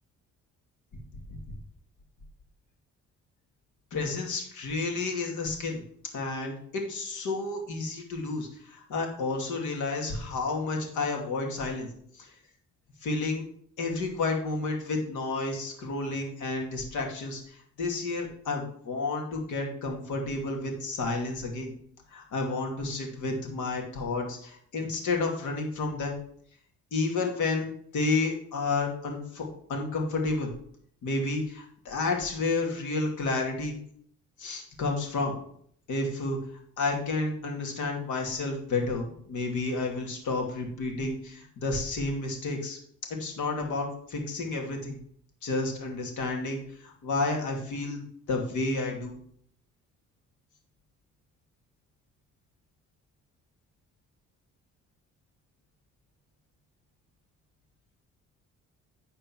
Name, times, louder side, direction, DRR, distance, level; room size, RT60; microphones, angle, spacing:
voice 1, 3.9-5.8 6.1-11.9 12.1-12.3 13.0-13.4 13.8-21.7 22.1-26.2 26.9-30.5 31.0-33.7 34.4-35.4 35.9-36.4 36.8-42.8 43.2-45.0 45.4-48.0 48.3-49.2, left 3 dB, 75° left, 1 dB, 2.5 m, -31 dB
11.0 x 4.4 x 5.9 m, 0.64 s
cardioid pair, 90°, 30 cm